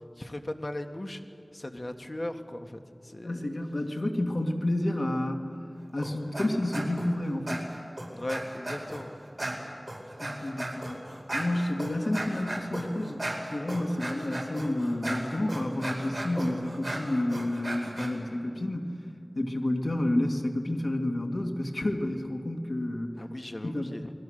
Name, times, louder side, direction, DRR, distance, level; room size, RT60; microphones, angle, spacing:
voice 1, 0.2-1.2 1.5-3.4 8.1-9.1 23.2-24.1, left 1 dB, 50° left, 5 dB, 1.7 m, -37 dB
voice 2, 3.2-5.4 5.9-7.7 10.2-11.0 11.3-19.0 19.3-23.2 23.6-23.9, left 1 dB, 75° left, 3 dB, 2.2 m, -30 dB
sound 1, 6.0-6.5 6.7-7.1 7.5-9.0 9.4-18.1, right 1 dB, 45° right, 5.0 m, -36 dB
29.0 x 21.5 x 6.6 m, 2.5 s
wide cardioid pair, 45°, 0 cm